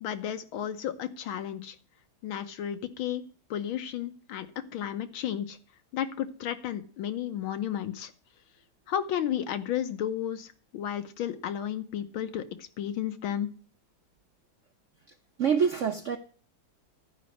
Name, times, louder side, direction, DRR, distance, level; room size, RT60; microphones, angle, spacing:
voice 1, 0.0-1.8 2.2-3.2 3.5-5.6 5.9-8.1 8.9-13.5, left 10 dB, 85° left, 9 dB, 1.8 m, -33 dB
voice 2, 15.1-16.2, right 7 dB, 75° right, 7 dB, 0.7 m, -27 dB
11.5 x 5.2 x 8.4 m, 0.41 s
omnidirectional pair, 2.2 m